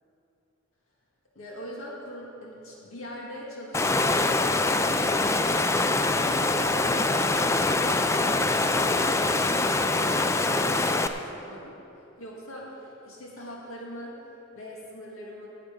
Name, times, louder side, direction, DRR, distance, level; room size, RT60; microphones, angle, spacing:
voice 1, 1.4-5.4 6.1-14.2 14.5-15.5, equal, 75° left, -3 dB, 2.0 m, -42 dB
Water, 3.7-11.1, left 2 dB, 15° left, 0.4 m, -24 dB
17.0 x 8.0 x 5.2 m, 2.9 s
head